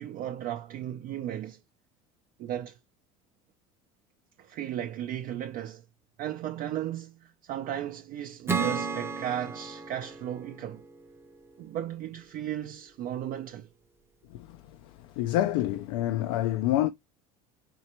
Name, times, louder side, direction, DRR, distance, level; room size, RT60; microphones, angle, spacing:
voice 1, 0.0-1.6 2.4-2.8 4.4-5.8 6.2-10.8 11.6-13.7, right 11 dB, 55° right, 0.5 m, -35 dB
Acoustic guitar / Strum, 8.5-11.9, right 5 dB, 15° right, 0.6 m, -34 dB
voice 2, 15.2-16.9, left 14 dB, 80° left, 0.4 m, -27 dB
4.4 x 3.2 x 2.9 m
supercardioid pair, 100°, 17 cm